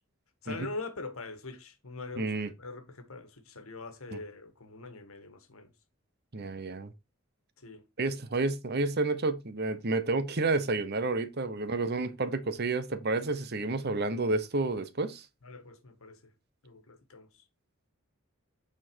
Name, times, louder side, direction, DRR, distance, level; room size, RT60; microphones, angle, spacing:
voice 1, 0.4-5.7 7.6-8.1 15.4-16.2 16.6-17.4, left 3 dB, 75° left, 1.5 m, -43 dB
voice 2, 2.2-2.5 4.1-4.2 6.3-6.9 8.0-15.3, right 3 dB, 45° right, 0.8 m, -30 dB
8.9 x 4.4 x 4.5 m
head